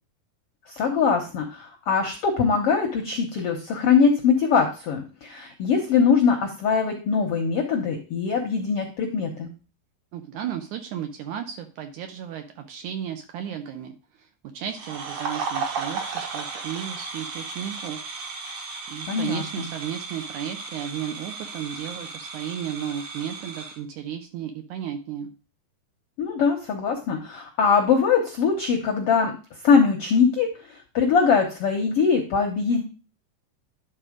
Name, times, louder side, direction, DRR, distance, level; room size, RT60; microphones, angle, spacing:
voice 1, 0.7-9.5 19.1-19.7 26.2-29.3 29.6-30.5 30.9-32.8, left 5 dB, 75° left, 3 dB, 1.3 m, -22 dB
voice 2, 10.1-14.3 14.5-18.0 18.9-25.3, right 9 dB, 75° right, 6 dB, 1.9 m, -34 dB
sound 1, 14.7-23.8, right 4 dB, 55° right, 2.3 m, -34 dB
11.0 x 3.9 x 5.0 m, 0.35 s
omnidirectional pair, 4.1 m